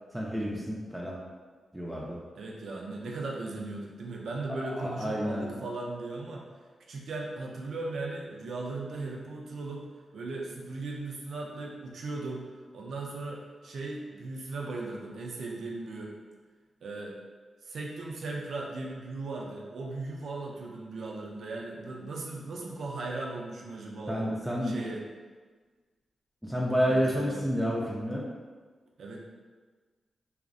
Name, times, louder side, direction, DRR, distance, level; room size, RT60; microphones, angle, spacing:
voice 1, 0.1-1.2 1.7-2.2 4.6-5.5 24.1-24.7 26.4-28.3, equal, 5° right, -4 dB, 0.4 m, -29 dB
voice 2, 2.4-6.4 6.9-9.9 10.1-12.5 12.7-16.1 16.8-17.2 17.6-24.3 24.6-25.0 26.8-27.4 29.0-29.2, right 3 dB, 80° right, -1 dB, 0.4 m, -37 dB
2.5 x 2.0 x 2.4 m, 1.4 s
cardioid pair, 70°, 0 cm